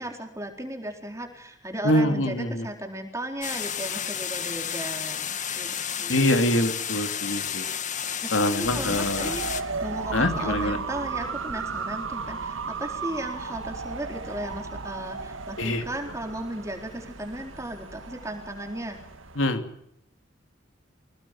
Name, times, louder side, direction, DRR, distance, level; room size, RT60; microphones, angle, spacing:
voice 1, 0.0-6.3 8.2-9.4 9.8-19.0, right 1 dB, 15° right, 3 dB, 4.1 m, -36 dB
voice 2, 1.8-2.6 6.1-7.7 8.3-9.3 10.1-10.8 15.6-15.8 19.4-19.6, left 1 dB, 75° left, 7 dB, 3.1 m, -24 dB
sound 1, 3.4-9.6, left 8 dB, 40° left, 1.9 m, -31 dB
sound 2, 8.6-19.5, right 4 dB, 90° right, 1.9 m, -35 dB
26.5 x 18.5 x 7.5 m, 0.72 s
head